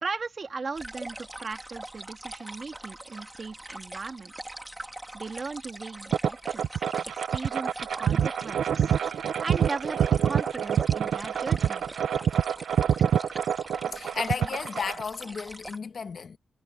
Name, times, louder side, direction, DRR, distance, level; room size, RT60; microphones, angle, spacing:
voice 1, 0.0-4.3 5.1-6.8 7.1-8.9 9.4-10.0 10.2-11.8, right 4 dB, 35° right, 2.0 m, -37 dB
sound 1, 0.7-15.8, right 1 dB, 10° right, 3.2 m, -42 dB
sound 2, 6.1-15.0, right 8 dB, 80° right, 0.8 m, -26 dB
voice 2, 13.9-16.4, left 6 dB, 50° left, 1.5 m, -33 dB
wide cardioid pair, 140°, 0 cm